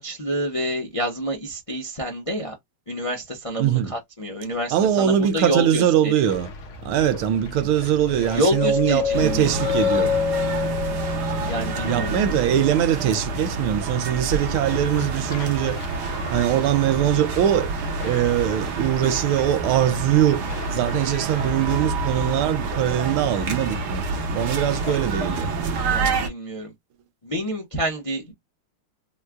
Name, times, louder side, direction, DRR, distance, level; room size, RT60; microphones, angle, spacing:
voice 1, 0.0-2.5 2.9-6.1 8.3-9.5 11.5-12.2 25.8-26.7 27.2-28.3, equal, 40° left, 0.4 m, -28 dB
voice 2, 3.6-3.9 4.7-6.5 6.8-10.1 11.8-15.8 16.3-17.7 18.0-20.4 20.7-24.1 24.3-25.5, right 10 dB, 85° right, 1.5 m, -22 dB
sound 1, 6.2-25.4, left 2 dB, 60° left, 1.2 m, -38 dB
sound 2, 8.2-12.3, left 7 dB, 75° left, 0.8 m, -26 dB
sound 3, 9.1-26.3, right 4 dB, 60° right, 1.3 m, -28 dB
4.4 x 2.3 x 2.2 m
omnidirectional pair, 2.3 m